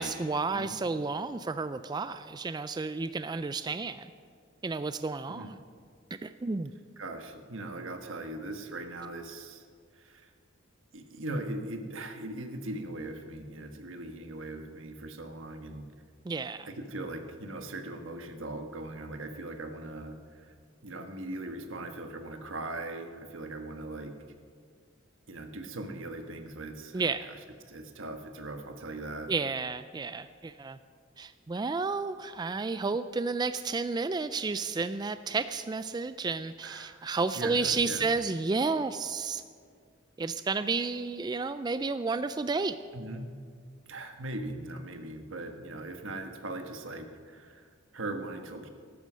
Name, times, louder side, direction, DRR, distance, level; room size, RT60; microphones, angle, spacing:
voice 1, 0.0-4.1 4.6-5.5 6.2-6.7 16.3-16.7 26.9-27.3 29.3-30.8 31.2-39.4 40.2-42.8, right 4 dB, 20° right, 12 dB, 0.3 m, -31 dB
voice 2, 7.0-9.6 9.9-10.3 10.9-15.8 16.7-20.5 20.8-24.1 25.3-27.4 27.7-29.3 36.6-37.0 37.3-38.1 42.9-43.3 43.9-48.7, right 2 dB, 75° right, 6 dB, 1.4 m, -40 dB
14.5 x 12.0 x 6.2 m, 2.1 s
head